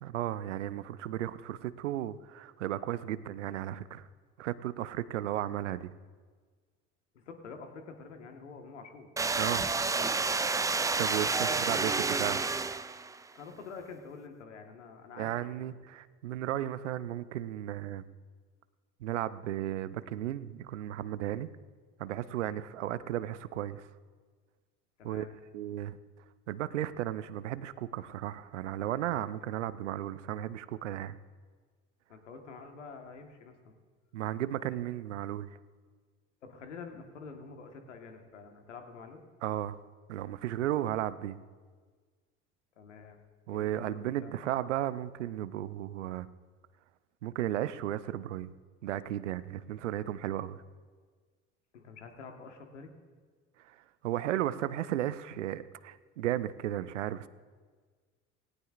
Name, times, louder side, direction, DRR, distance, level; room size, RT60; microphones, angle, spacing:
voice 1, 0.0-4.1 4.4-5.9 9.4-9.7 10.6-12.4 15.2-18.0 19.0-21.5 22.0-23.9 25.0-25.2 25.5-26.0 26.5-31.2 34.1-35.5 39.4-39.8 40.1-41.4 43.5-46.3 47.2-48.5 48.8-50.6 53.6-57.3, right 12 dB, 85° right, 16 dB, 0.6 m, -34 dB
voice 2, 7.1-9.1 11.5-11.8 13.3-15.3 15.6-15.7 25.0-25.3 32.1-33.8 36.4-39.2 42.8-43.2 43.5-44.3 51.7-52.9, left 5 dB, 90° left, 4 dB, 1.5 m, -47 dB
sound 1, 9.2-13.2, right 4 dB, 10° right, 0.4 m, -29 dB
17.5 x 17.5 x 2.5 m, 1.5 s
hypercardioid pair, 70°, 35 cm